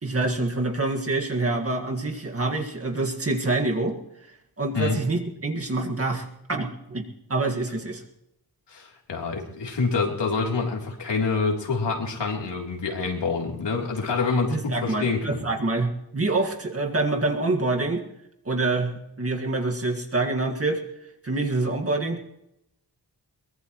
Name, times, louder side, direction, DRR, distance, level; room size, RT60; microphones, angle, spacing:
voice 1, 0.0-4.0 4.6-8.0 14.5-18.0 18.5-20.8 21.2-22.2, right 2 dB, 35° right, 2 dB, 1.9 m, -26 dB
voice 2, 8.7-15.4, left 4 dB, 80° left, 0 dB, 3.5 m, -26 dB
22.5 x 19.5 x 3.1 m, 0.81 s
wide cardioid pair, 140°, 42 cm